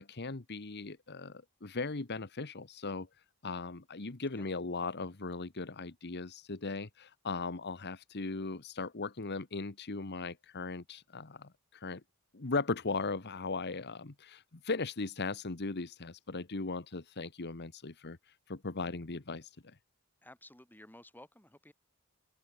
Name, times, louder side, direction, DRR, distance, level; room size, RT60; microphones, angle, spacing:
voice 1, 0.0-3.1 3.4-12.0 12.3-19.8, left 3 dB, 50° left, 1.2 m, -38 dB
voice 2, 20.2-21.7, left 1 dB, 10° left, 5.0 m, -55 dB
open air
head